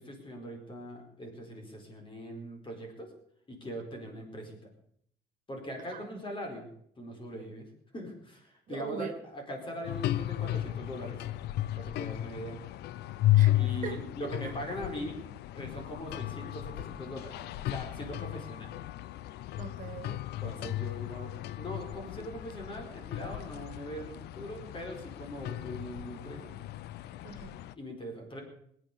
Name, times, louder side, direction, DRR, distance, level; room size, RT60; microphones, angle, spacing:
voice 1, 0.0-3.1 3.5-4.7 5.5-6.7 7.0-7.7 7.9-11.2 11.8-12.6 13.5-15.2 15.5-17.3 17.7-18.7 20.4-26.5 27.8-28.4, equal, 30° left, 3 dB, 4.7 m, -41 dB
voice 2, 3.9-4.3 5.9-6.2 7.3-7.5 8.7-9.1 13.3-14.0 14.2-14.5 19.6-20.3 27.2-27.6, right 7 dB, 50° right, 8 dB, 1.9 m, -42 dB
sound 1, 9.8-27.7, left 15 dB, 75° left, 0.6 m, -34 dB
20.0 x 9.1 x 6.9 m, 0.68 s
cardioid pair, 110°, 17 cm